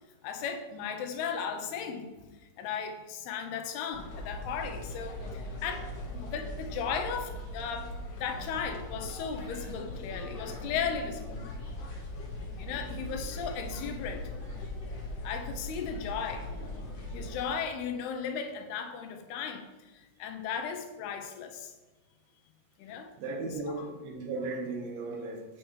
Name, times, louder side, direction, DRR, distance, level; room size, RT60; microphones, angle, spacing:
voice 1, 0.2-2.1 2.6-8.0 8.2-11.4 12.6-14.3 15.2-16.5 17.1-19.9 20.2-21.7 22.8-23.1 23.8-23.9, left 6 dB, 80° left, 2.6 m, -36 dB
sound 1, 3.9-17.5, left 1 dB, 55° left, 1.9 m, -40 dB
voice 2, 23.2-25.6, right 3 dB, 70° right, 2.9 m, -36 dB
14.0 x 5.9 x 3.2 m
omnidirectional pair, 4.7 m